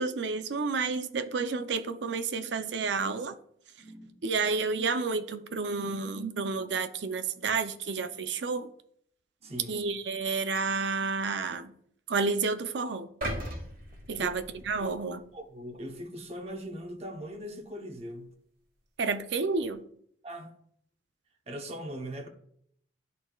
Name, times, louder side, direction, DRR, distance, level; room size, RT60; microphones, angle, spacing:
voice 1, 0.0-3.3 4.2-8.7 9.7-11.7 12.1-13.1 14.1-15.2 19.0-19.8, right 4 dB, 80° right, 0.6 m, -30 dB
voice 2, 3.8-4.2 9.4-9.8 14.1-14.3 14.8-15.0 15.3-18.4 20.2-20.5 21.5-22.3, equal, 35° right, 0.9 m, -40 dB
sound 1, 13.2-15.4 15.8-16.0, right 1 dB, 50° right, 1.3 m, -38 dB
12.0 x 4.1 x 2.3 m
head